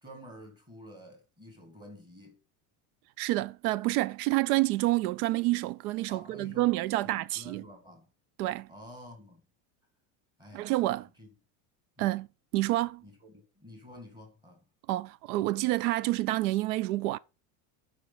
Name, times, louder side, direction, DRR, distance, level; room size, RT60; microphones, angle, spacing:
voice 1, 0.0-2.4 6.1-6.7 7.0-8.1 8.7-9.5 10.4-11.3 12.0-12.2 13.0-14.6, left 1 dB, 10° right, 2.0 m, -50 dB
voice 2, 3.2-7.6 8.4-8.7 10.5-11.1 12.0-12.3 12.5-13.0 14.9-17.2, right 18 dB, 85° right, 0.5 m, -28 dB
7.8 x 5.4 x 5.6 m
cardioid pair, 180°, 43 cm